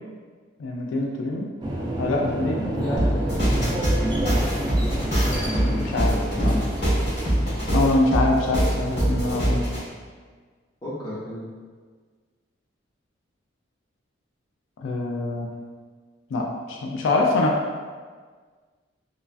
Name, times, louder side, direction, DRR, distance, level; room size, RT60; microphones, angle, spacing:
voice 1, 0.6-1.5 2.0-3.3 5.6-6.5 7.7-9.7 14.8-15.5 16.3-17.5, left 2 dB, 75° left, -1 dB, 0.3 m, -25 dB
sound 1, 1.6-7.9, right 1 dB, 20° right, 0.3 m, -29 dB
sound 2, 3.0-9.8, right 1 dB, 55° left, 1.4 m, -23 dB
voice 2, 5.2-6.6 10.8-11.5, left 1 dB, 20° left, -9 dB, 0.7 m, -34 dB
3.0 x 2.3 x 2.4 m, 1.5 s
head